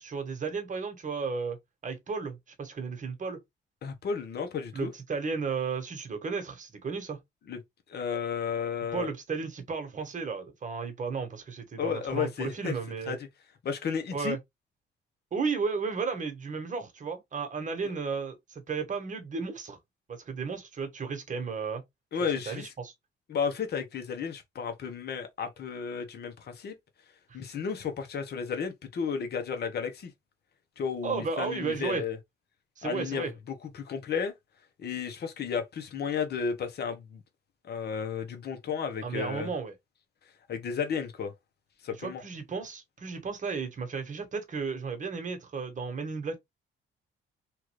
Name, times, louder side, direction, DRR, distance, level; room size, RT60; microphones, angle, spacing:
voice 1, 0.0-1.6 1.8-3.4 4.7-7.2 8.9-13.2 14.1-14.4 15.3-19.8 20.1-21.8 22.5-22.9 31.0-32.0 32.8-33.3 39.0-39.7 42.0-46.4, right 5 dB, 40° right, 1.2 m, -34 dB
voice 2, 3.8-4.9 7.5-7.6 7.9-9.1 11.8-12.7 13.1-13.3 13.6-14.4 22.1-22.7 23.3-26.8 27.3-30.1 30.8-32.2 32.8-34.3 34.8-37.2 37.6-39.5 40.5-41.3 41.8-42.2, left 6 dB, 55° left, 0.9 m, -33 dB
3.1 x 2.5 x 3.1 m
cardioid pair, 90°, 20 cm